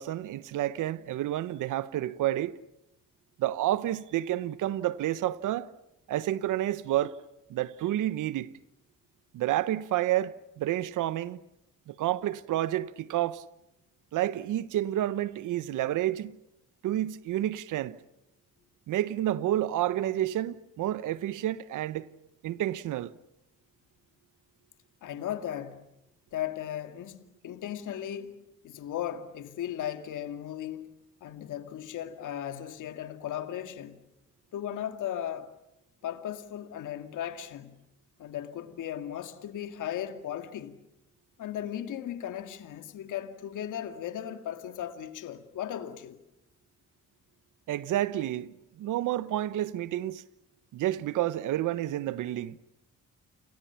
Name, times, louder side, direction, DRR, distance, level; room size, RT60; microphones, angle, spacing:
voice 1, 0.0-2.6 3.4-5.7 6.1-7.2 7.5-8.5 9.3-11.4 11.9-13.4 14.1-16.4 16.8-18.0 18.9-22.1 22.4-23.1 47.7-50.2 50.7-52.6, right 13 dB, 75° right, 1.1 m, -30 dB
voice 2, 25.0-25.9 26.3-30.9 31.2-34.0 34.5-35.5 36.0-37.8 38.2-40.8 41.4-46.2, left 10 dB, 70° left, 2.2 m, -36 dB
29.5 x 29.5 x 5.9 m
supercardioid pair, 60°, 31 cm